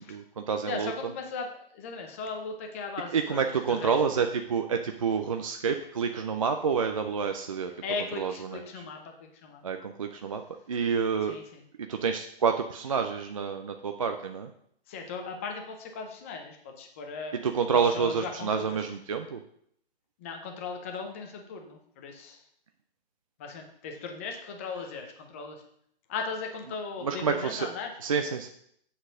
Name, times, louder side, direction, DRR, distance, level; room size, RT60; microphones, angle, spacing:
voice 1, 0.0-0.9 3.1-7.7 8.2-8.8 9.6-10.4 10.7-11.4 11.8-14.5 17.4-19.4 27.0-27.7 28.0-28.5, right 6 dB, 35° right, 5 dB, 0.4 m, -28 dB
voice 2, 0.7-3.4 3.7-3.9 7.8-9.6 11.3-11.6 14.9-18.9 20.2-22.4 23.4-25.6 26.1-27.9, left 4 dB, 15° left, 3 dB, 0.5 m, -38 dB
7.9 x 4.2 x 6.1 m, 0.69 s
hypercardioid pair, 155°, 31 cm